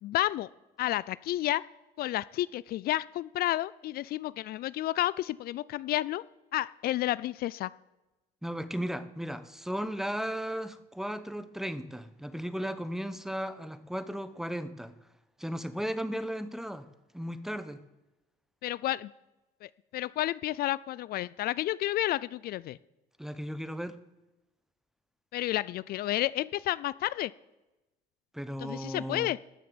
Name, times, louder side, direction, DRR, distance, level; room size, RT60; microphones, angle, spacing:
voice 1, 0.0-0.5 0.8-1.6 2.0-6.2 6.5-7.7 18.6-19.1 19.6-22.8 25.3-27.3 28.6-29.4, left 15 dB, 65° left, 0.4 m, -31 dB
voice 2, 8.4-14.9 15.4-16.9 17.1-17.8 23.2-24.0 28.3-29.3, equal, ahead, 0.9 m, -35 dB
14.0 x 6.9 x 7.8 m
cardioid pair, 110°, 17 cm